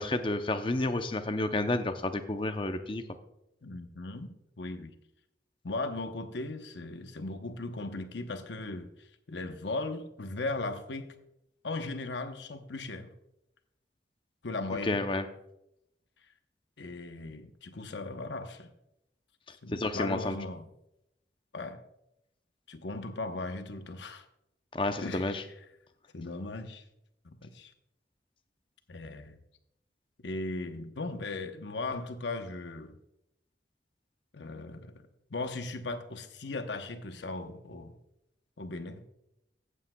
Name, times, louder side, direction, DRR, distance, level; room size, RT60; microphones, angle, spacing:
voice 1, 0.0-3.0 14.9-15.2 19.7-20.4 24.7-25.4, left 2 dB, 30° left, 8 dB, 0.6 m, -30 dB
voice 2, 3.6-4.9 5.6-8.9 9.3-11.1 11.6-13.1 14.4-15.0 16.8-18.7 19.6-20.6 21.5-21.8 22.7-24.2 25.0-25.4 26.1-26.8 27.2-27.7 28.9-29.4 30.2-33.0 34.3-35.0 35.3-38.0 38.6-39.0, left 2 dB, 80° left, 8 dB, 0.9 m, -37 dB
15.0 x 8.5 x 2.3 m, 0.82 s
head